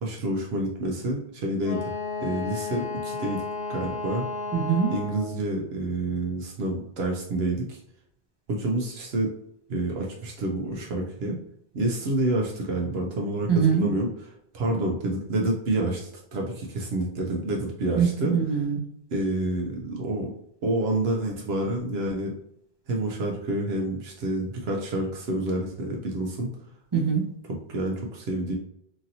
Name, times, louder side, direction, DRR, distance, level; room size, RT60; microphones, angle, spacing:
voice 1, 0.0-1.8 2.2-3.4 3.7-4.2 4.9-7.8 8.5-9.3 9.7-11.4 11.7-18.3 19.1-20.3 20.6-22.3 22.9-26.6 27.5-28.6, right 1 dB, 80° right, -1 dB, 0.8 m, -28 dB
Wind instrument woodwind instrument, 1.6-5.4, left 4 dB, 45° left, 1.0 m, -33 dB
voice 2, 4.5-4.9 13.5-13.9 17.9-18.8 26.9-27.3, right 6 dB, 40° right, -1 dB, 0.3 m, -23 dB
2.9 x 2.7 x 2.6 m, 0.73 s
omnidirectional pair, 1.0 m